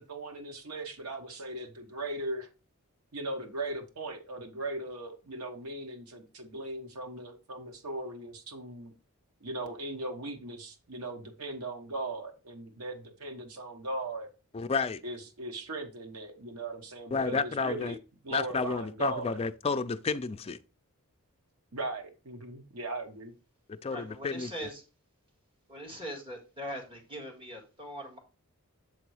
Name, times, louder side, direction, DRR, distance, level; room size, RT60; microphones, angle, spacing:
voice 1, 0.0-2.5 3.1-8.9 9.4-14.3 15.0-18.0 18.2-19.4 21.7-23.3, right 2 dB, 80° right, 1.3 m, -38 dB
voice 2, 14.5-15.0 17.1-18.0 18.3-20.6 23.7-24.5, left 4 dB, 25° left, 0.4 m, -31 dB
voice 3, 23.8-24.8 25.7-28.2, equal, 25° right, 1.9 m, -41 dB
7.7 x 3.8 x 4.7 m
head